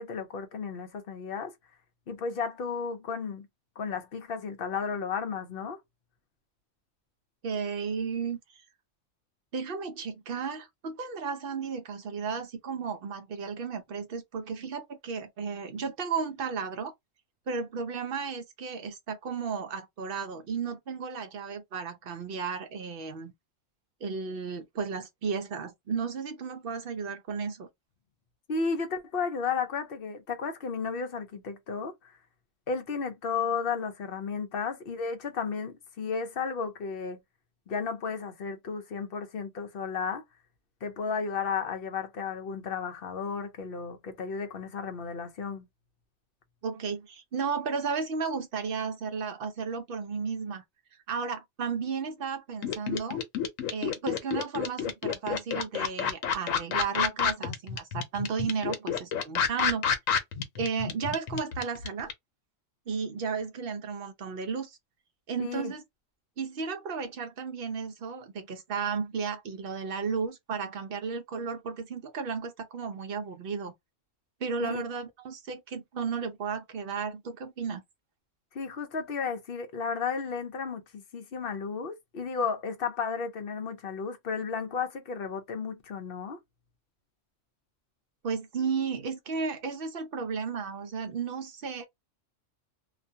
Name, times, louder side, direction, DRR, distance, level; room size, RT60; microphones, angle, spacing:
voice 1, 0.0-1.5 2.1-3.5 3.8-5.8 28.5-31.9 32.7-37.2 37.7-40.2 40.8-45.7 65.4-65.7 74.6-74.8 78.5-86.4, left 5 dB, 55° left, 0.8 m, -33 dB
voice 2, 7.4-8.4 9.5-16.9 17.5-23.3 24.0-27.7 46.6-50.6 51.1-53.2 53.7-59.9 60.6-62.1 62.9-64.8 65.3-65.8 66.4-73.7 74.4-77.8 88.2-91.9, right 5 dB, 60° right, 0.7 m, -34 dB
sound 1, 52.6-62.1, left 7 dB, 90° left, 1.1 m, -28 dB
2.5 x 2.2 x 2.6 m
omnidirectional pair, 1.3 m